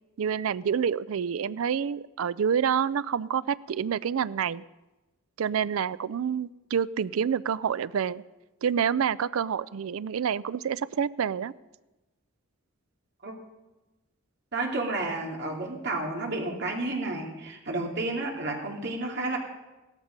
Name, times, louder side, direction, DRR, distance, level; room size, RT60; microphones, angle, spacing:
voice 1, 0.2-4.6 5.4-8.2 8.6-11.5, right 7 dB, 80° right, 17 dB, 0.4 m, -28 dB
voice 2, 14.5-19.4, right 2 dB, 55° right, 1 dB, 2.6 m, -31 dB
16.5 x 13.5 x 5.2 m, 1.1 s
head